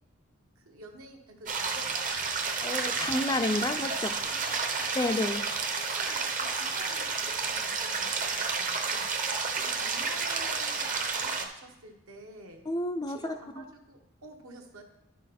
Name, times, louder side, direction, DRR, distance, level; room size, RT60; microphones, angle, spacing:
voice 1, 0.6-2.3 4.0-5.0 6.0-9.1 9.5-12.6 13.1-14.8, right 2 dB, 70° right, 2 dB, 1.3 m, -49 dB
sound 1, 1.5-11.5, right 4 dB, 35° right, 0.8 m, -31 dB
voice 2, 2.6-4.1 5.0-5.4 12.7-13.2 13.6-13.7, left 2 dB, 20° left, 7 dB, 0.4 m, -30 dB
10.5 x 6.3 x 4.2 m, 0.90 s
head